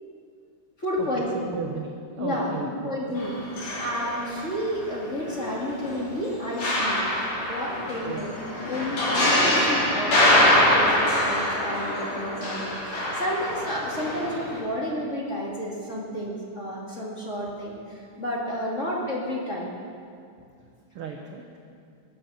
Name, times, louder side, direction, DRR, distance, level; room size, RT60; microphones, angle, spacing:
voice 1, 0.8-1.6 2.2-3.4 3.8-7.0 7.5-8.3 8.7-19.7, equal, 25° left, -4 dB, 2.1 m, -31 dB
voice 2, 1.3-3.2 8.0-8.4 20.9-21.4, right 5 dB, 65° right, 2 dB, 1.4 m, -35 dB
sound 1, 3.2-4.8 5.2-14.6, left 1 dB, 55° left, 4.2 m, -24 dB
21.5 x 8.5 x 6.3 m, 2.4 s
omnidirectional pair, 3.7 m